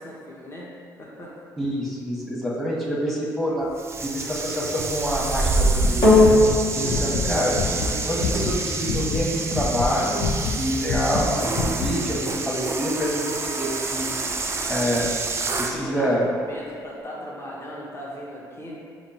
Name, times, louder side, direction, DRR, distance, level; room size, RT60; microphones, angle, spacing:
voice 1, 0.0-1.4 6.8-7.1 15.7-18.7, equal, 30° left, -5 dB, 0.9 m, -38 dB
voice 2, 1.6-3.7 4.0-6.4 6.7-7.5 8.0-14.1 14.7-15.1 15.6-16.2, equal, ahead, -4 dB, 1.1 m, -26 dB
sound 1, 3.8-15.8, right 3 dB, 30° right, 0.4 m, -28 dB
sound 2, 5.6-8.6 8.8-11.3 11.5-11.9, left 4 dB, 75° left, 0.5 m, -27 dB
sound 3, 6.0-14.6 15.3-15.4, left 2 dB, 60° left, 1.0 m, -25 dB
4.8 x 2.1 x 4.2 m, 2.1 s
supercardioid pair, 65°, 9 cm